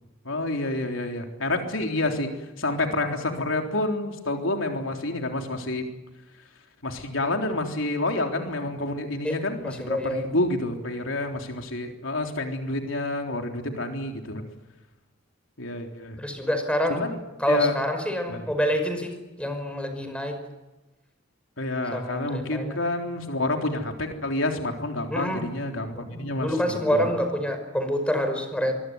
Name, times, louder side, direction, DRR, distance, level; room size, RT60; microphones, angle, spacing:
voice 1, 0.2-2.3 2.6-5.8 6.8-14.4 15.6-16.2 16.9-17.2 17.5-17.7 18.3-18.5 21.6-27.1, left 2 dB, 80° left, 3 dB, 3.7 m, -28 dB
voice 2, 9.2-10.3 16.2-17.1 17.4-20.4 21.9-22.8 25.1-25.5 25.9-28.8, equal, 5° left, 6 dB, 5.4 m, -27 dB
25.0 x 23.0 x 9.5 m, 1.1 s
head